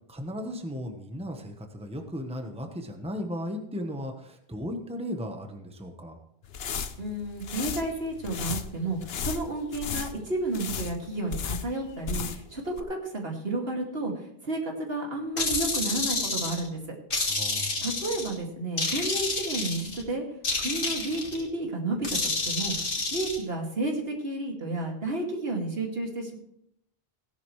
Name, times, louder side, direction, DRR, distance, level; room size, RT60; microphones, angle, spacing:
voice 1, 0.1-6.2 17.3-17.8, equal, 5° right, 4 dB, 1.1 m, -36 dB
sound 1, 6.4-12.5 12.8-12.9, left 6 dB, 75° left, 1.1 m, -35 dB
voice 2, 7.0-14.1 14.4-17.0 17.8-20.2 20.6-26.4, right 2 dB, 75° right, 0 dB, 2.6 m, -31 dB
sound 2, 15.4-16.7 17.1-18.3 18.8-20.0 20.4-21.4 22.0-23.4, left 3 dB, 60° left, 1.9 m, -29 dB
17.0 x 11.0 x 3.2 m, 0.74 s
omnidirectional pair, 1.0 m